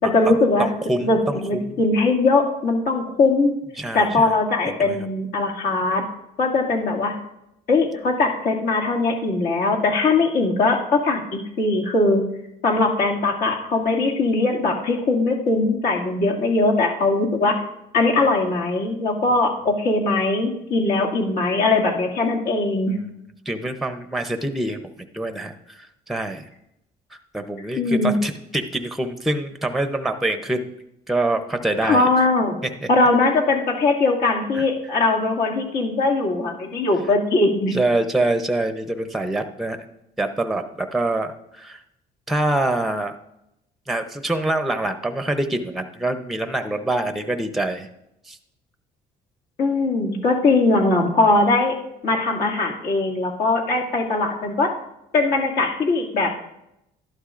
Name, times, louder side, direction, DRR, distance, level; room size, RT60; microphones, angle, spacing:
voice 1, 0.0-0.7 1.0-3.5 3.9-6.0 6.4-7.1 7.7-12.2 12.6-17.6 17.9-22.9 27.8-28.2 31.8-32.6 32.9-37.7 49.6-51.8 52.0-54.7 55.1-56.3, left 3 dB, 65° left, -1 dB, 2.4 m, -20 dB
voice 2, 0.6-1.7 3.8-4.3 4.8-5.0 23.5-24.8 25.1-26.5 27.1-30.7 31.1-32.1 32.8-32.9 34.5-34.6 37.7-39.8 40.2-41.8 42.3-43.1 43.9-47.9 48.3-48.4, right 2 dB, ahead, 8 dB, 0.7 m, -25 dB
12.0 x 11.5 x 2.5 m, 0.84 s
cardioid pair, 110°, 17 cm